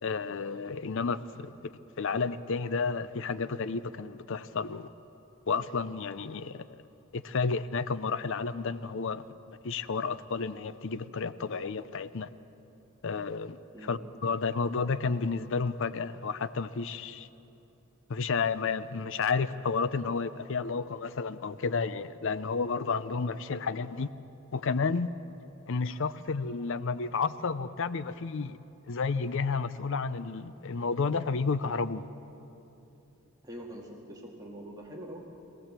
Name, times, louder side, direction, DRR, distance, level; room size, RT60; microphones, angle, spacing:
voice 1, 0.0-1.7 2.0-4.9 5.5-6.8 7.1-12.3 13.0-17.3 18.1-24.1 24.5-25.1 25.7-28.6 28.9-32.0, left 4 dB, 60° left, 0.5 m, -31 dB
voice 2, 33.4-35.2, equal, 15° right, 2.2 m, -44 dB
22.5 x 16.5 x 7.4 m
head